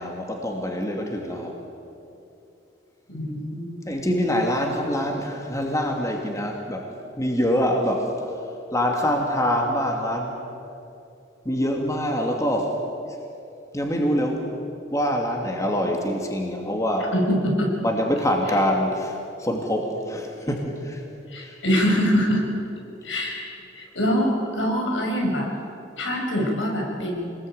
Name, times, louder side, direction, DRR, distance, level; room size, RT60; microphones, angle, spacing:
voice 1, 0.0-1.5 3.9-6.9 7.2-8.4 8.7-10.4 11.4-12.7 13.7-14.5 14.9-17.1 17.8-21.0 21.4-21.6, equal, 15° left, 1 dB, 2.5 m, -25 dB
voice 2, 3.1-3.7 17.1-17.7 21.3-22.4 23.0-23.5 23.7-25.5 26.0-27.3, equal, 85° left, 0 dB, 6.2 m, -24 dB
26.0 x 20.0 x 9.0 m, 2.7 s
head